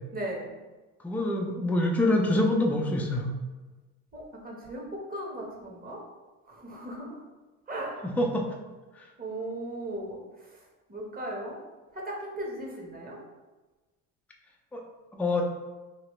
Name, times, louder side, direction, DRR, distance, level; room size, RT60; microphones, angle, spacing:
voice 1, 0.1-0.5 4.1-4.8 5.1-6.0 6.5-7.2 7.7-8.0 9.2-10.2 10.9-11.6 11.9-13.2, right 1 dB, 20° right, -2 dB, 1.1 m, -37 dB
voice 2, 1.0-3.3 8.0-8.5 14.7-14.8 15.1-15.4, left 1 dB, 5° left, 0 dB, 0.5 m, -25 dB
3.0 x 2.8 x 3.1 m, 1.2 s
hypercardioid pair, 75°, 41 cm